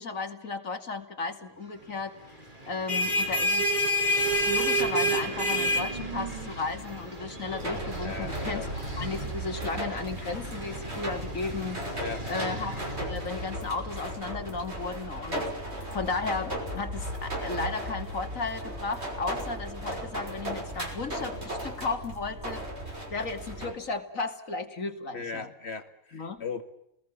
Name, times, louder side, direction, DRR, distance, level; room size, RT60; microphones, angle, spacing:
voice 1, 0.0-2.1 2.7-3.7 4.4-11.8 12.3-22.7 23.1-25.5 26.1-26.4, left 4 dB, 85° left, 6 dB, 2.9 m, -34 dB
sound 1, 2.6-13.9, equal, 35° right, 5.9 m, -30 dB
sound 2, 7.6-23.7, right 1 dB, 55° right, 6.4 m, -36 dB
voice 2, 8.0-8.7 12.0-12.7 25.1-26.6, left 5 dB, 55° left, 8 dB, 2.8 m, -38 dB
30.0 x 20.5 x 7.5 m, 0.79 s
omnidirectional pair, 1.4 m